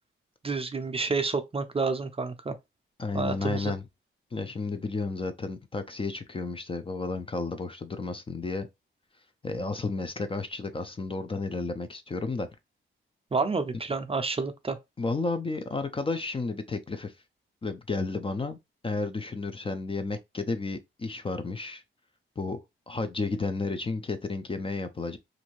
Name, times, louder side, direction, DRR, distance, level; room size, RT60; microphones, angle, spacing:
voice 1, 0.4-2.6 3.1-3.7 13.3-14.8, right 4 dB, 25° right, 0.5 m, -29 dB
voice 2, 3.0-3.8 4.3-8.7 9.4-12.5 15.0-17.1 17.6-18.6 18.8-21.8 22.4-25.2, left 3 dB, 25° left, 0.4 m, -32 dB
2.6 x 2.6 x 3.0 m
cardioid pair, 80°, 21 cm